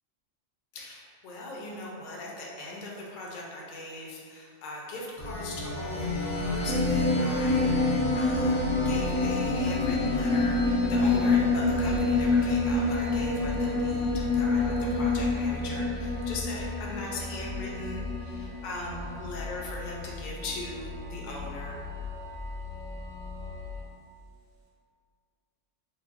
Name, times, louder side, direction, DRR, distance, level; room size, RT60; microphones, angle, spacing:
voice 1, 0.7-8.6 8.8-21.8, left 2 dB, 50° left, -3 dB, 0.6 m, -39 dB
sound 1, 5.2-23.8, left 2 dB, 75° left, 1.2 m, -34 dB
sound 2, 6.7-18.6 18.9-19.0, left 3 dB, 55° right, 1.0 m, -27 dB
5.4 x 2.1 x 2.5 m, 2.2 s
omnidirectional pair, 1.3 m